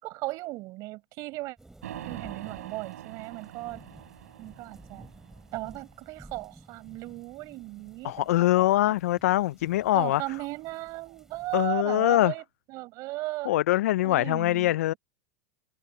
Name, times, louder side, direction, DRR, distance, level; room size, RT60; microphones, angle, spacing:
voice 1, 0.0-1.6 2.1-3.8 4.4-5.1 5.5-8.9 9.9-13.5 14.0-15.0, right 21 dB, 45° right, 6.9 m, -37 dB
sound 1, 1.6-11.7, right 2 dB, 5° right, 4.3 m, -53 dB
sound 2, 1.8-5.9, right 13 dB, 85° right, 3.8 m, -44 dB
voice 2, 8.0-10.2 11.5-12.3 13.5-14.9, left 15 dB, 80° left, 0.4 m, -23 dB
supercardioid pair, 140°, 8 cm